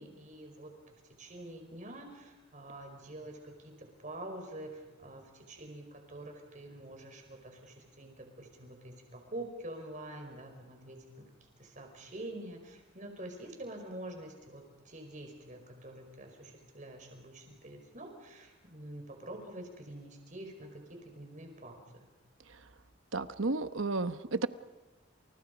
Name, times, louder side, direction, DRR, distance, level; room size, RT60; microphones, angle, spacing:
voice 1, 0.0-11.3 11.6-22.1, right 1 dB, 40° right, 4 dB, 5.1 m, -46 dB
voice 2, 23.1-24.5, right 3 dB, 75° right, 11 dB, 1.1 m, -32 dB
29.5 x 29.0 x 5.3 m, 1.1 s
head